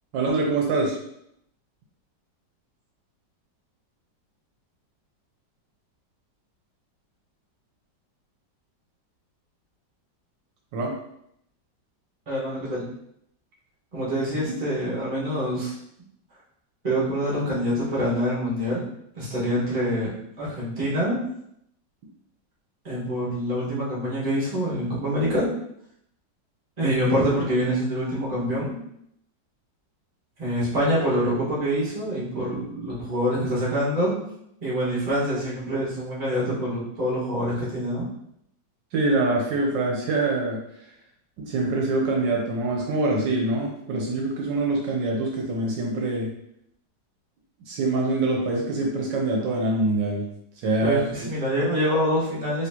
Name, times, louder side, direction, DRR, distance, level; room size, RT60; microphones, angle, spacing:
voice 1, 0.1-1.0 10.7-10.9 38.9-40.6 41.4-46.3 47.7-50.2 50.6-51.3, right 2 dB, 75° right, -1 dB, 1.4 m, -24 dB
voice 2, 12.3-12.9 13.9-15.7 16.8-18.8 19.1-21.2 22.8-25.5 26.8-28.8 30.4-34.2 34.6-38.1 50.8-52.7, equal, 25° right, -7 dB, 1.4 m, -25 dB
4.3 x 3.2 x 2.8 m, 0.74 s
omnidirectional pair, 2.0 m